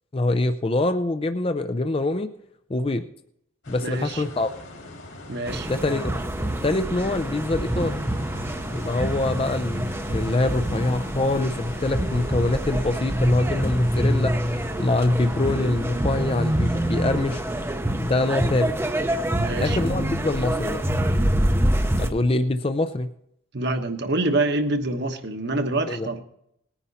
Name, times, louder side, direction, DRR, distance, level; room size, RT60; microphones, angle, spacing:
voice 1, 0.1-2.3 2.7-3.0 3.7-4.5 5.7-6.1 6.6-8.0 8.7-17.4 18.0-18.7 19.6-20.8 22.0-23.1 25.9-26.1, left 2 dB, 25° left, 9 dB, 0.5 m, -24 dB
sound 1, 3.6-17.8, left 1 dB, 65° left, 2.6 m, -42 dB
voice 2, 3.8-4.2 5.3-5.7 19.4-19.8 23.5-26.2, right 2 dB, 55° right, 6 dB, 1.2 m, -26 dB
sound 2, 5.5-22.1, right 1 dB, 10° right, 0.7 m, -26 dB
19.0 x 9.9 x 4.1 m, 0.75 s
head